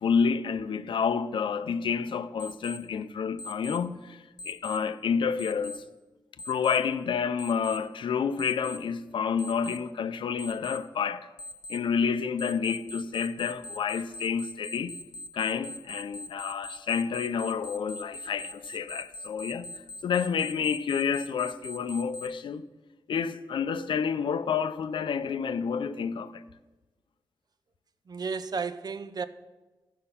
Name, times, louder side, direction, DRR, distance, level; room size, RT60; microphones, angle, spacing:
voice 1, 0.0-5.8 6.5-11.3 11.7-14.9 15.3-19.7 20.0-22.6 23.1-26.4, left 6 dB, 85° left, 0.5 m, -29 dB
Alarm, 2.4-2.8 3.4-3.8 4.4-4.8 5.4-5.8 6.4-6.8 7.4-7.8 8.4-8.8 9.4-9.8 10.4-10.8 11.4-11.8 12.4-22.3, left 1 dB, 60° left, 1.0 m, -41 dB
voice 2, 28.1-29.3, right 5 dB, 50° right, 0.5 m, -33 dB
13.0 x 5.4 x 5.6 m
cardioid pair, 75°, 8 cm